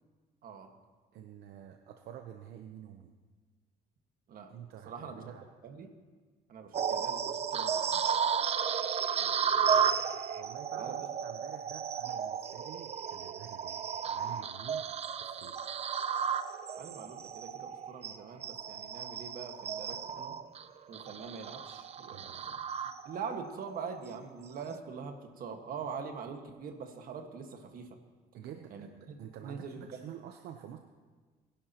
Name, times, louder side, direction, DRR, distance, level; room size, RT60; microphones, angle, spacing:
voice 1, 1.1-3.1 4.5-5.4 9.5-14.9 15.2-15.6 22.1-22.6 28.3-30.8, right 10 dB, 75° right, 5 dB, 0.8 m, -49 dB
voice 2, 4.8-5.3 5.6-5.9 6.5-8.0 9.2-9.8 10.8-11.0 16.8-20.4 20.9-22.5 23.0-28.0 28.7-29.2 29.4-29.9, right 6 dB, 55° right, 5 dB, 1.6 m, -43 dB
sound 1, 6.7-23.4 23.9-24.1 24.6-24.8, right 7 dB, 40° right, 0.6 m, -33 dB
22.0 x 11.0 x 2.9 m, 1.4 s
cardioid pair, 110°, 17 cm